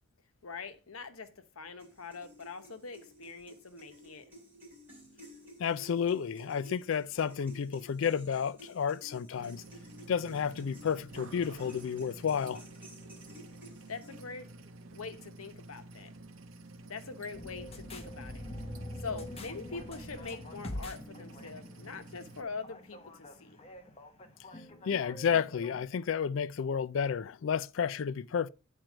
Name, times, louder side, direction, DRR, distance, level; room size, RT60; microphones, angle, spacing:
voice 1, 0.4-4.3 13.9-14.5 14.9-16.1 16.8-18.4 19.0-23.6, left 4 dB, 85° left, 1.0 m, -43 dB
sound 1, 1.8-14.4, equal, 10° right, 3.9 m, -54 dB
voice 2, 5.6-9.6 10.1-12.6 24.8-28.5, left 7 dB, 65° left, 0.4 m, -31 dB
sound 2, 9.4-22.4, right 2 dB, 70° right, 0.9 m, -50 dB
sound 3, 17.3-25.8, left 1 dB, 30° left, 0.9 m, -45 dB
9.1 x 4.5 x 5.0 m
head